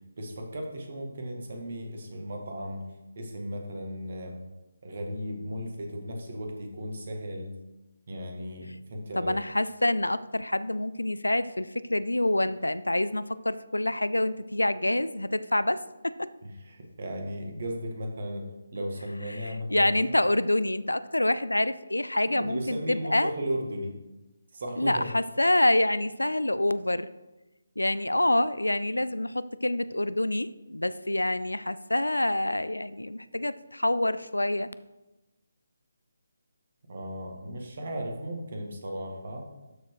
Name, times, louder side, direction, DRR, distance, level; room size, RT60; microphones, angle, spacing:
voice 1, 0.2-2.8 3.2-4.4 4.8-7.5 8.1-9.3 16.4-20.1 22.2-24.0 24.5-25.1 36.9-39.5, equal, 50° right, 2 dB, 1.9 m, -36 dB
voice 2, 9.2-16.3 19.3-23.3 24.8-27.1 27.8-34.7, left 1 dB, 80° left, 16 dB, 0.4 m, -27 dB
12.5 x 4.7 x 4.8 m, 1.0 s
figure-of-eight pair, 145°, 0 cm